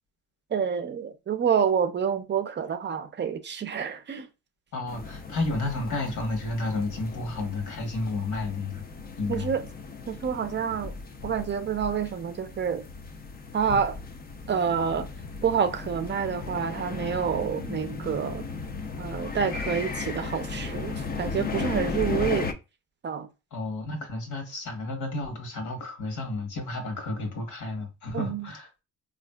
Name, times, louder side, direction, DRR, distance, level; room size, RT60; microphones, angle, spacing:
voice 1, 0.5-4.3 9.3-9.6 10.1-10.9 11.2-12.8 13.5-14.0 14.5-15.1 15.4-18.5 19.0-22.5 23.0-23.3 28.1-28.5, right 7 dB, 40° right, 0.5 m, -28 dB
voice 2, 4.7-8.8 9.2-9.5 23.5-28.7, left 2 dB, 75° left, 1.2 m, -31 dB
sound 1, 4.9-22.5, left 4 dB, 30° left, 0.4 m, -36 dB
3.5 x 2.5 x 2.2 m
cardioid pair, 90°, 30 cm